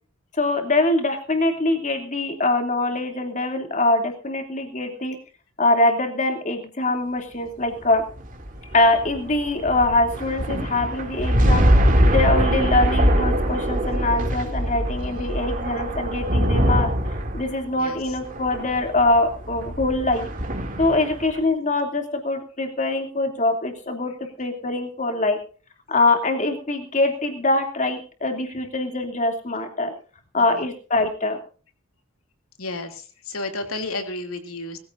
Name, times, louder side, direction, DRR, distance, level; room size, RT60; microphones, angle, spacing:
voice 1, 0.4-5.2 5.6-8.0 8.7-11.7 12.1-16.9 17.3-20.3 20.8-25.4 25.9-29.9 30.3-31.4, left 2 dB, 35° left, 5 dB, 2.8 m, -23 dB
sound 1, 7.8-21.4, equal, 40° right, 2.6 m, -23 dB
voice 2, 15.0-15.4 17.8-18.1 21.0-21.1 30.3-30.7 32.6-34.8, left 2 dB, 85° left, 6 dB, 2.8 m, -33 dB
21.0 x 15.0 x 2.6 m, 0.39 s
head